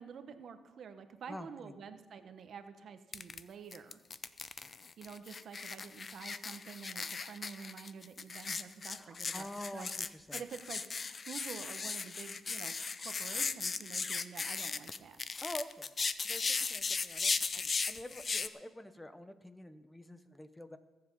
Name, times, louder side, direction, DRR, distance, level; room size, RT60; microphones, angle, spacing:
voice 1, 0.0-4.0 5.0-9.5 9.7-9.9 10.3-10.8 11.3-15.2, right 6 dB, 60° right, 9 dB, 1.1 m, -48 dB
voice 2, 1.3-1.7 8.9-10.4 15.4-15.9 16.2-20.8, left 1 dB, 10° left, 11 dB, 0.9 m, -47 dB
sound 1, 3.1-3.4 3.7-18.5, left 4 dB, 35° left, 0.6 m, -37 dB
21.5 x 7.8 x 5.4 m, 1.1 s
cardioid pair, 90°, 0 cm